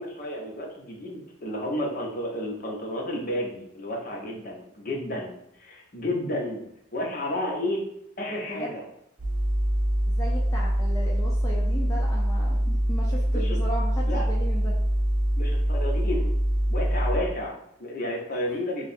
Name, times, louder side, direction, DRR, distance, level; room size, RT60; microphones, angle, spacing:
voice 1, 0.0-6.6 6.9-7.9 8.2-8.8 13.3-13.6 14.0-14.2 15.4-16.3 16.7-18.9, left 1 dB, 45° left, -1 dB, 0.8 m, -31 dB
sound 1, 9.2-17.2, equal, 45° right, 0.7 m, -24 dB
voice 2, 10.1-14.8, equal, 15° left, -3 dB, 0.4 m, -36 dB
2.8 x 2.4 x 4.1 m, 0.77 s
head